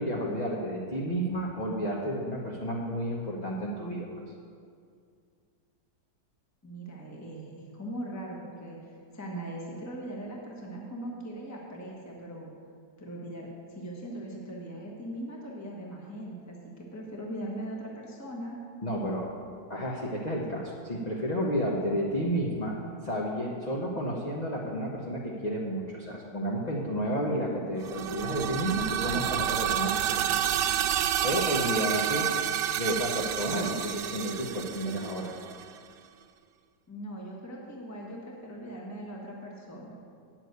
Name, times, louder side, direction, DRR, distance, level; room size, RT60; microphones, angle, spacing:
voice 1, 0.0-4.1 18.8-19.4 19.7-22.8 23.0-30.4 30.7-30.9 31.2-32.3 32.8-35.3, equal, 30° left, -3 dB, 1.0 m, -31 dB
voice 2, 6.6-12.5 13.0-18.6 36.9-39.9, right 1 dB, 10° left, -2 dB, 1.2 m, -40 dB
sound 1, 27.8-35.6, right 10 dB, 85° right, 1.2 m, -29 dB
9.2 x 7.5 x 8.1 m, 2.3 s
omnidirectional pair, 1.9 m